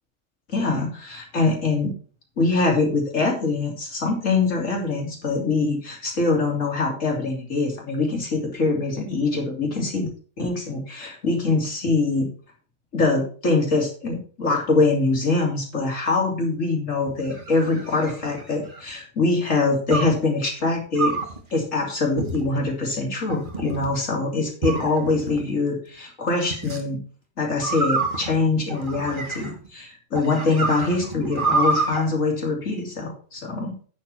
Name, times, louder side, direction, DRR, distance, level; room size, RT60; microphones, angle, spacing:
voice 1, 0.5-1.9 2.4-10.1 10.4-12.3 12.9-21.1 21.5-27.0 27.4-33.8, left 3 dB, 85° left, 0 dB, 3.5 m, -23 dB
sound 1, 17.1-18.9 19.9-20.2 20.9-21.4 22.2-22.7 23.3-23.9 24.6-25.4 26.5-26.8 27.6-29.7 30.1-32.0, right 3 dB, 40° right, 1.8 m, -27 dB
9.3 x 7.5 x 4.3 m, 0.41 s
omnidirectional pair, 1.3 m